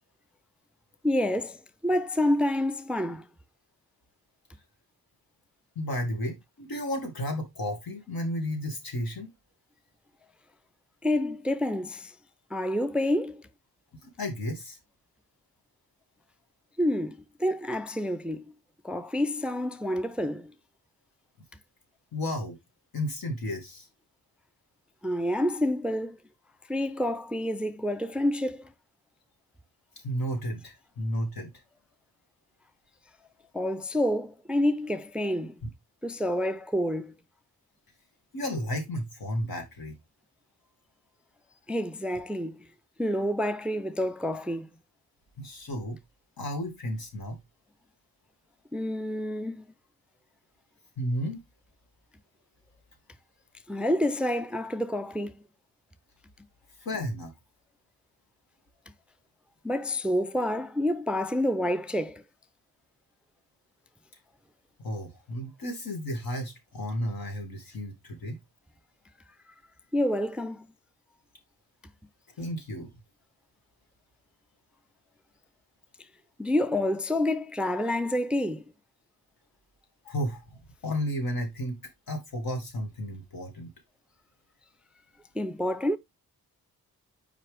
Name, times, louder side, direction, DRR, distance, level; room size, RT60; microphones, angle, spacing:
voice 1, 1.0-3.3 11.0-12.1 12.5-13.4 16.8-18.4 18.8-20.5 25.0-26.2 26.7-28.7 33.5-35.6 36.0-37.1 41.7-42.7 43.0-44.7 48.7-49.6 53.7-55.4 59.6-62.2 69.9-70.7 76.4-78.6 85.3-86.0, left 1 dB, 5° right, 0.3 m, -28 dB
voice 2, 5.8-9.3 14.0-14.8 22.1-22.6 22.9-23.9 30.0-31.5 38.3-40.0 45.4-46.0 46.4-47.4 51.0-51.4 56.8-57.3 64.8-68.4 72.4-72.9 80.0-81.8 82.1-83.7, equal, 80° left, 2.3 m, -33 dB
5.7 x 4.8 x 3.4 m
wide cardioid pair, 115°, 36 cm